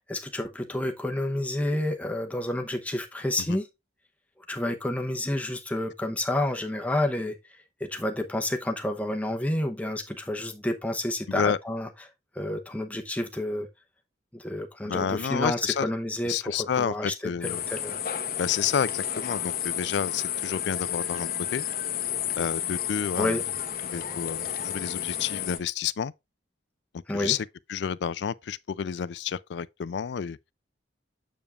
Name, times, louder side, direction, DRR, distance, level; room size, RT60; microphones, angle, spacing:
voice 1, 0.1-3.7 4.5-7.4 7.8-11.9 12.4-13.7 14.3-18.0 23.2-23.4 27.1-27.3, left 1 dB, 10° left, 0.7 m, -29 dB
voice 2, 11.3-11.6 14.9-15.9 16.3-17.6 18.4-21.6 22.4-23.4 23.9-26.1 27.1-30.4, left 7 dB, 65° left, 0.3 m, -30 dB
sound 1, 17.4-25.6, left 10 dB, 50° left, 0.7 m, -31 dB
7.0 x 7.0 x 2.4 m
head